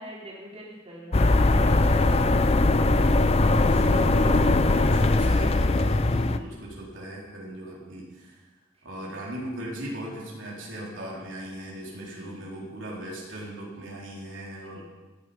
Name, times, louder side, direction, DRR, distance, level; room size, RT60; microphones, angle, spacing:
voice 1, 0.0-2.0 6.1-6.6 9.0-9.2 11.9-12.5 14.6-14.8, equal, 30° right, -5 dB, 4.2 m, -45 dB
sound 1, 1.1-6.4, left 2 dB, 30° left, 0.6 m, -20 dB
voice 2, 2.1-8.5 8.8-14.8, right 1 dB, 80° right, -4 dB, 3.8 m, -38 dB
17.0 x 11.0 x 5.2 m, 1.2 s
head